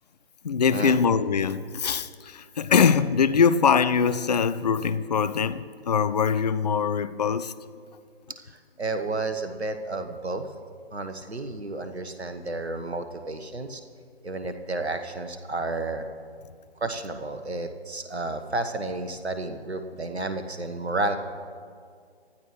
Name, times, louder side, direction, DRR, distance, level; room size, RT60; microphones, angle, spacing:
voice 1, 0.4-7.5, left 6 dB, 40° left, 0.5 m, -23 dB
voice 2, 8.8-10.5 10.9-13.8 14.2-16.0 16.8-21.2, right 2 dB, 85° right, 1.2 m, -31 dB
25.5 x 12.5 x 3.2 m
figure-of-eight pair, 140°, 32 cm